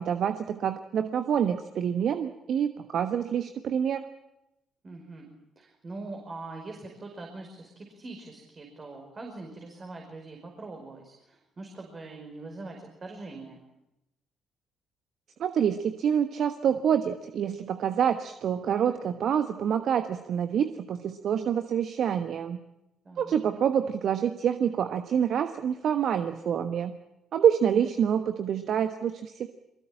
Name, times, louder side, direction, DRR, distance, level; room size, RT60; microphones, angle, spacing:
voice 1, 0.0-4.1 15.4-22.6 23.2-26.9 27.3-29.5, right 8 dB, 55° right, 9 dB, 1.2 m, -27 dB
voice 2, 4.8-13.6 23.1-23.3, right 3 dB, 35° right, 2 dB, 5.2 m, -43 dB
23.5 x 21.5 x 8.9 m, 0.90 s
hypercardioid pair, 45°, 0 cm